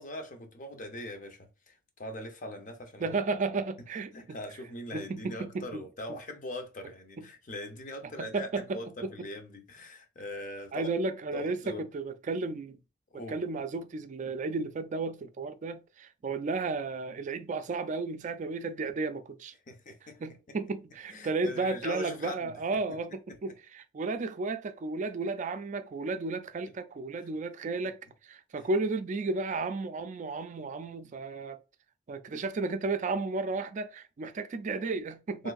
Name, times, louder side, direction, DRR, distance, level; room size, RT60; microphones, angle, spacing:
voice 1, 0.0-3.2 4.1-10.9 11.3-11.8 13.1-13.4 19.7-20.2 21.1-23.0 23.3-23.4 32.3-32.4 35.4-35.5, left 1 dB, 45° left, 0.7 m, -41 dB
voice 2, 3.0-4.4 4.9-5.8 7.2-7.3 8.0-9.3 10.7-12.8 13.1-19.5 20.2-31.6 32.1-35.5, right 3 dB, 40° right, 0.3 m, -33 dB
3.2 x 2.7 x 2.3 m
head